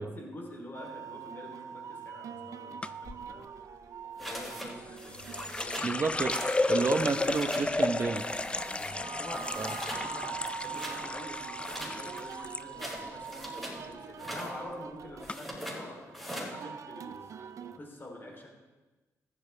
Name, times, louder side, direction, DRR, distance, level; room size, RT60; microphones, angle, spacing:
voice 1, 0.0-3.8 4.2-6.0 8.6-17.3 17.6-18.5, left 1 dB, 40° left, 1 dB, 3.2 m, -46 dB
sound 1, 0.7-17.8, right 8 dB, 65° right, 0.6 m, -44 dB
sound 2, 2.8-3.2 4.7-12.6 12.9-13.5 13.8-14.2 14.9-15.0 15.3-15.4, left 2 dB, 20° left, 0.4 m, -33 dB
sound 3, 4.2-4.7 5.0-5.9 6.3-6.6 6.9-7.7 8.1-8.9 9.3-10.1 10.4-11.0 11.6-13.8 14.1-14.5 15.2-15.8 16.1-16.5, equal, ahead, 4.9 m, -41 dB
voice 2, 5.8-6.4 6.7-8.2 9.6-9.7, right 4 dB, 40° right, 9 dB, 0.9 m, -30 dB
14.5 x 12.0 x 3.3 m, 1.2 s
cardioid pair, 70°, 6 cm